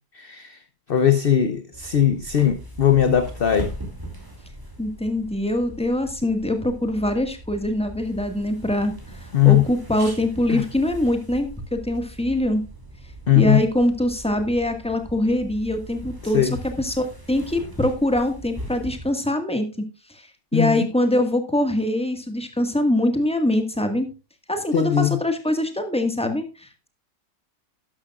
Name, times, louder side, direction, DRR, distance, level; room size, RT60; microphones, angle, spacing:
voice 1, 0.1-0.6 0.9-3.7 9.3-9.6 10.0-10.1 10.5-10.6 13.3-13.6 16.3-16.5 20.5-20.9 24.7-25.2, left 10 dB, 45° left, 10 dB, 0.8 m, -19 dB
sound 1, 1.7-19.1, right 1 dB, 15° right, 2.8 m, -39 dB
voice 2, 4.8-12.6 13.3-24.1 24.5-26.9, left 1 dB, 5° left, 6 dB, 1.6 m, -23 dB
12.5 x 11.5 x 2.4 m, 0.29 s
omnidirectional pair, 1.6 m